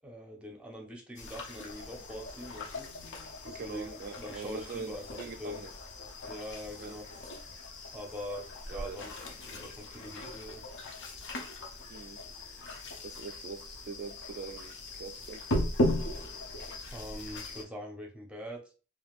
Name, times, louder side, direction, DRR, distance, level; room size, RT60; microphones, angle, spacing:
voice 1, 0.0-2.9 3.4-5.0 5.4-5.6 6.3-7.0 7.9-9.2 9.5-10.6 16.9-18.6, equal, 5° right, 0.7 m, -43 dB
sound 1, 1.2-17.6, left 1 dB, 60° left, 0.6 m, -38 dB
voice 2, 3.4-5.7 6.8-6.9 8.7-9.0 11.9-12.2 12.6-15.4, right 5 dB, 45° right, 0.3 m, -43 dB
3.4 x 2.6 x 2.4 m
head